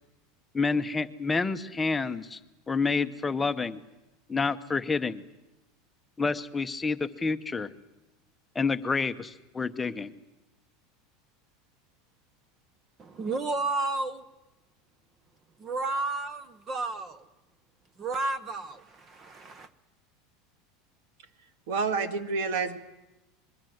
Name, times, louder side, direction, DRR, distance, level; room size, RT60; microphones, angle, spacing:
voice 1, 0.5-2.4 2.7-3.8 4.3-5.2 6.2-7.7 8.5-10.1, left 4 dB, 10° left, 0.8 m, -28 dB
voice 2, 13.0-14.2 15.6-17.2 18.0-19.7, right 3 dB, 25° right, 0.8 m, -32 dB
voice 3, 21.7-22.8, right 4 dB, 70° right, 1.8 m, -28 dB
25.0 x 22.0 x 7.9 m
supercardioid pair, 160°, 0 cm